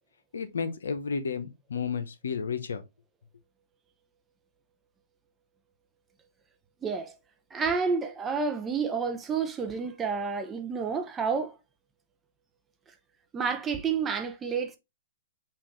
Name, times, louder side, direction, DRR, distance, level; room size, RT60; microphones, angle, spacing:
voice 1, 0.3-2.8, left 6 dB, 80° left, 0.7 m, -32 dB
voice 2, 6.8-7.1 7.5-11.6 13.3-14.8, right 5 dB, 15° right, 0.6 m, -29 dB
5.6 x 2.5 x 3.0 m
hypercardioid pair, 130°, 0 cm